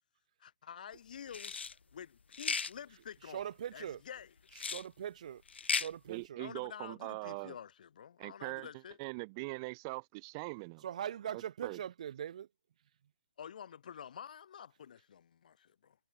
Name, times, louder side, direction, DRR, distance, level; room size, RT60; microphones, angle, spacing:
voice 1, 0.4-1.6 1.9-4.3 6.4-9.0 13.4-16.0, left 8 dB, 45° left, 3.3 m, -49 dB
sound 1, 1.3-1.7 2.3-2.7 4.5-4.8 5.5-5.9, left 5 dB, 80° left, 0.9 m, -35 dB
voice 2, 3.3-4.0 4.6-6.4 10.8-12.5, right 9 dB, 40° right, 0.5 m, -41 dB
voice 3, 6.1-7.5 8.2-8.7 9.0-10.8 11.3-11.8, right 28 dB, 20° right, 1.5 m, -42 dB
hypercardioid pair, 170°, 6 cm